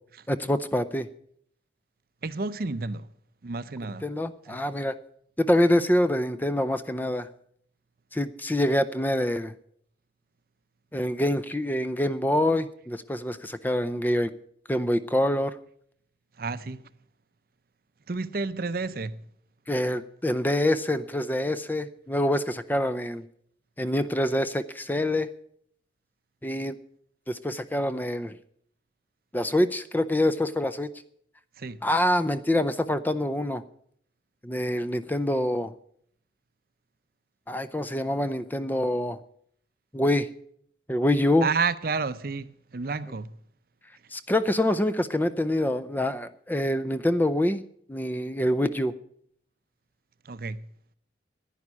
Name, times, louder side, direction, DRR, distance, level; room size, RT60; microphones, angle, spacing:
voice 1, 0.3-1.1 4.0-4.9 5.4-7.3 8.1-9.5 10.9-14.3 14.7-15.6 19.7-23.3 23.8-25.3 26.4-26.8 27.3-28.3 29.3-30.9 31.8-33.6 34.4-35.7 37.5-39.2 39.9-40.3 40.9-41.5 44.1-47.6 47.9-48.9, left 1 dB, 10° left, 0.5 m, -25 dB
voice 2, 2.2-3.1 3.4-4.0 4.5-4.6 16.4-16.8 18.1-19.2 31.6-31.8 41.4-43.3 50.2-50.6, right 4 dB, 55° right, 0.6 m, -30 dB
11.0 x 10.0 x 8.2 m
head